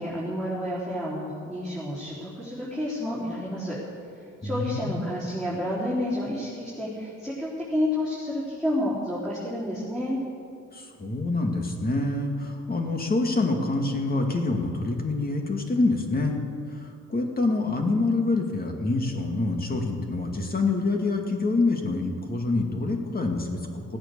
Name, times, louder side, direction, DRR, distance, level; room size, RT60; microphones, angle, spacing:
voice 1, 0.0-3.8 4.4-10.2, left 1 dB, ahead, -9 dB, 4.2 m, -30 dB
voice 2, 4.4-5.1 10.7-16.4 17.1-23.6, left 2 dB, 30° left, 2 dB, 2.3 m, -26 dB
16.5 x 8.7 x 7.0 m, 2.4 s
cardioid pair, 90°, 30 cm